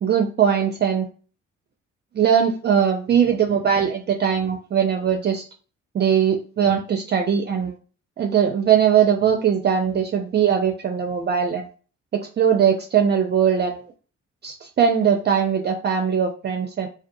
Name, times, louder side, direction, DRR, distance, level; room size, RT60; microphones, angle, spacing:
voice 1, 0.0-1.1 2.1-5.4 5.9-7.7 8.2-11.7 12.1-13.9 14.4-16.9, right 8 dB, 35° right, 3 dB, 0.4 m, -20 dB
2.5 x 2.2 x 2.5 m, 0.38 s
cardioid pair, 80°, 30 cm